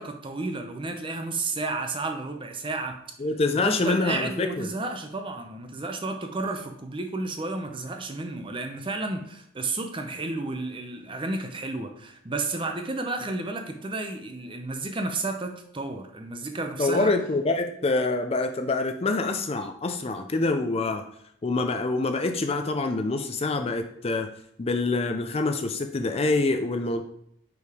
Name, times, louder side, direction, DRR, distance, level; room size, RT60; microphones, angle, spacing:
voice 1, 0.0-3.0 3.6-17.1, right 2 dB, 25° right, 5 dB, 0.6 m, -32 dB
voice 2, 3.2-4.7 16.8-21.0 21.4-24.3 24.6-27.0, left 3 dB, 30° left, 6 dB, 0.4 m, -26 dB
5.1 x 4.7 x 4.8 m, 0.72 s
head